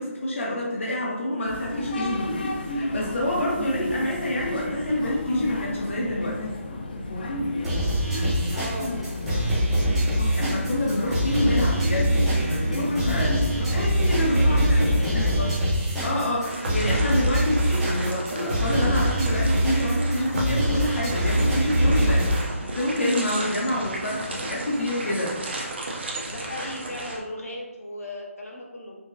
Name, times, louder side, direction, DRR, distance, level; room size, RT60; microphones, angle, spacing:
voice 1, 0.0-2.4 2.7-6.4 9.6-10.0 10.3-15.5 16.0-25.4, left 1 dB, 60° left, -3 dB, 0.8 m, -27 dB
sound 1, 1.5-15.6, left 2 dB, 40° left, 0.4 m, -31 dB
sound 2, 7.6-22.4, right 1 dB, 5° right, 0.7 m, -24 dB
voice 2, 8.5-8.9 14.1-15.5 26.2-29.0, left 1 dB, 90° left, -1 dB, 1.0 m, -37 dB
sound 3, 16.4-27.2, right 1 dB, 50° right, 0.6 m, -34 dB
5.0 x 2.0 x 2.6 m, 1.2 s
hypercardioid pair, 170°, 8 cm